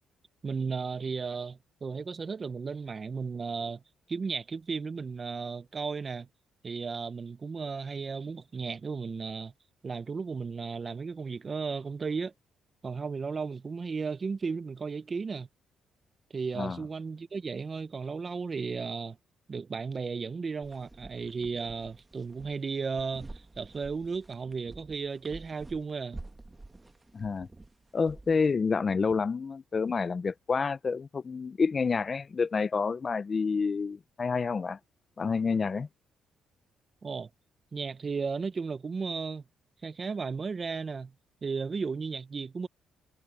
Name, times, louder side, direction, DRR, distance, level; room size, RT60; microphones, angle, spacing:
voice 1, 0.4-3.8 4.1-6.3 6.6-9.5 9.8-12.3 12.8-15.5 16.3-19.2 19.5-26.2 37.0-37.3 37.7-39.4 39.8-41.1 41.4-42.7, right 5 dB, 35° right, 1.1 m, -34 dB
sound 1, 20.6-28.5, right 2 dB, 20° right, 1.4 m, -49 dB
voice 2, 27.1-27.5 27.9-34.8 35.2-35.9, left 5 dB, 35° left, 0.6 m, -28 dB
cardioid pair, 90°, 0 cm